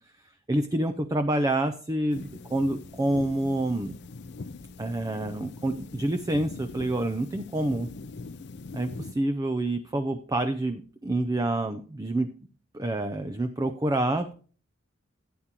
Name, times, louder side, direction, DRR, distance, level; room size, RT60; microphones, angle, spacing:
voice 1, 0.5-4.0 4.8-7.9 8.7-12.3 12.7-14.3, right 1 dB, 20° right, 8 dB, 0.5 m, -27 dB
sound 1, 2.1-9.1, left 3 dB, 60° left, 0.5 m, -42 dB
13.5 x 8.9 x 2.9 m, 0.40 s
head